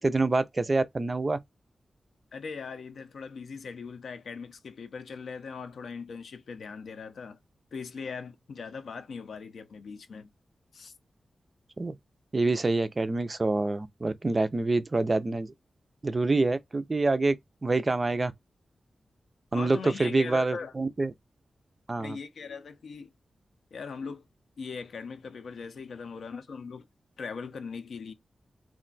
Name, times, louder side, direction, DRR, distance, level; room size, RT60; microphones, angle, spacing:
voice 1, 0.0-1.4 11.8-11.9 12.3-15.5 16.0-17.4 17.6-18.3 19.5-21.1 21.9-22.2, right 3 dB, 25° right, 0.3 m, -26 dB
voice 2, 2.3-7.4 7.7-10.3 10.7-10.9 19.5-20.7 22.0-23.1 23.7-24.3 24.6-26.8 27.2-28.1, left 5 dB, 75° left, 0.5 m, -40 dB
2.4 x 2.2 x 3.8 m
wide cardioid pair, 155°, 0 cm